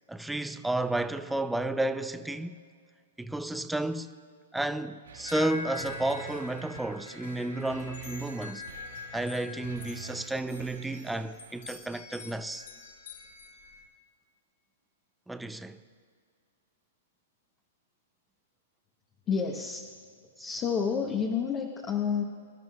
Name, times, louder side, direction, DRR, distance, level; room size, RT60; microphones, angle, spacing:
voice 1, 0.1-2.6 3.2-4.1 4.5-8.6 9.1-12.7 15.3-15.8 20.4-20.5, right 2 dB, 5° right, 0.5 m, -32 dB
sound 1, 5.0-5.5 5.8-8.4 8.7-9.3 9.6-11.5, right 6 dB, 85° right, 3.6 m, -48 dB
sound 2, 5.2-13.8, left 4 dB, 70° left, 3.7 m, -44 dB
voice 2, 19.3-19.9 20.4-22.2, left 6 dB, 25° left, 1.1 m, -29 dB
25.5 x 12.0 x 2.4 m
hypercardioid pair, 120°, 0 cm